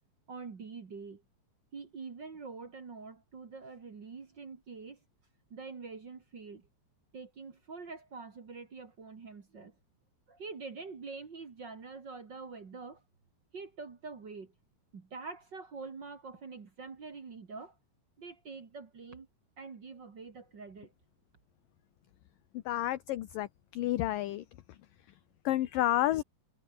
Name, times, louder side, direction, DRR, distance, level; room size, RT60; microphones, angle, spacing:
voice 1, 0.3-1.2 1.7-5.0 5.5-6.6 7.1-9.7 10.3-13.0 13.5-14.5 14.9-17.7 18.2-19.3 19.6-20.9, right 4 dB, 40° right, 1.8 m, -45 dB
voice 2, 22.7-23.5 23.7-24.4 25.5-26.2, left 14 dB, 70° left, 2.4 m, -30 dB
omnidirectional pair, 4.7 m